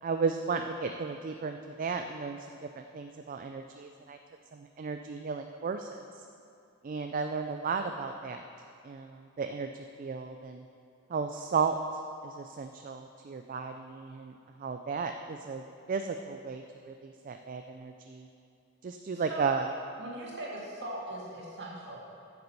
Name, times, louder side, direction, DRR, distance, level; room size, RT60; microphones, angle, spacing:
voice 1, 0.0-2.4 2.7-4.2 4.5-6.0 6.8-8.4 8.8-9.7 10.0-10.6 11.1-11.8 12.2-14.3 14.6-15.6 15.9-18.3 18.8-19.7, right 5 dB, 40° right, 6 dB, 0.4 m, -34 dB
voice 2, 19.1-19.5 20.0-22.0, right 1 dB, 55° right, -3 dB, 2.1 m, -40 dB
8.7 x 6.7 x 6.9 m, 2.5 s
head